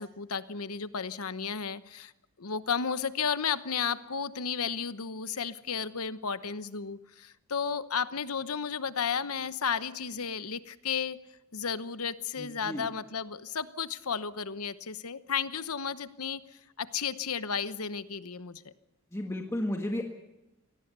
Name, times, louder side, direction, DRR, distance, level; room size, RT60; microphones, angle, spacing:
voice 1, 0.0-2.1 2.4-11.2 11.5-16.4 16.8-18.7, left 6 dB, 85° left, 13 dB, 1.0 m, -33 dB
voice 2, 12.4-12.9 19.1-20.0, left 1 dB, 15° left, 2 dB, 1.6 m, -33 dB
24.0 x 18.5 x 6.8 m, 0.93 s
head